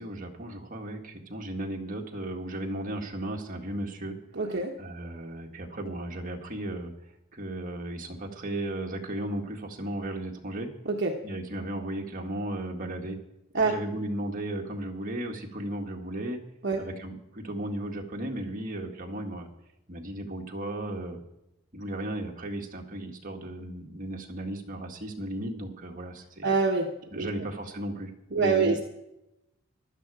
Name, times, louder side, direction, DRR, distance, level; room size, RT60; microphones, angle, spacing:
voice 1, 0.0-4.2 4.8-6.9 7.3-10.7 11.2-13.2 13.6-16.4 16.8-19.5 19.9-21.2 21.7-26.5 27.1-28.1 28.4-28.8, right 1 dB, 40° right, 1 dB, 2.0 m, -35 dB
voice 2, 4.3-4.8 10.8-11.2 13.5-13.7 16.6-16.8 26.4-27.3 28.3-28.8, right 4 dB, 60° right, 1 dB, 1.3 m, -25 dB
15.5 x 12.0 x 4.9 m, 0.88 s
head